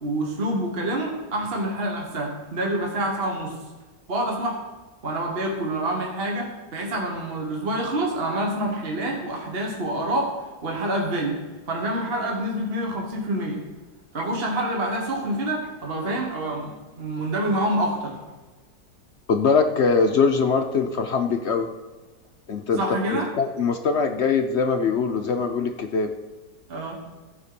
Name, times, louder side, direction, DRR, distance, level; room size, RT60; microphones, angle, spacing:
voice 1, 0.0-3.5 4.1-4.6 5.0-10.3 10.6-11.3 11.7-13.6 14.1-18.2 22.8-23.3 26.7-27.0, right 1 dB, 35° right, 0 dB, 1.7 m, -27 dB
voice 2, 19.3-21.7 22.5-22.8 23.4-26.1, left 5 dB, 55° left, 6 dB, 0.8 m, -22 dB
14.5 x 5.2 x 6.8 m, 1.3 s
omnidirectional pair, 1.8 m